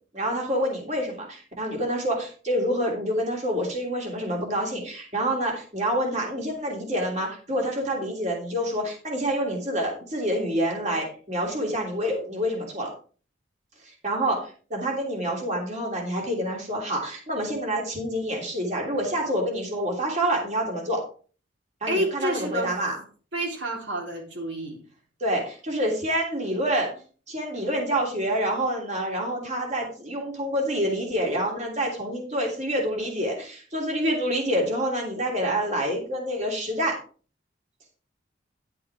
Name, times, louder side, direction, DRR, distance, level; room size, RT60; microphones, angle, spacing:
voice 1, 0.1-12.9 13.8-21.0 21.8-23.0 25.2-26.9 27.3-37.0, equal, 40° right, 0 dB, 3.1 m, -27 dB
voice 2, 21.9-22.7 23.3-24.8, right 1 dB, 65° right, -1 dB, 3.7 m, -29 dB
10.5 x 8.4 x 3.6 m, 0.39 s
head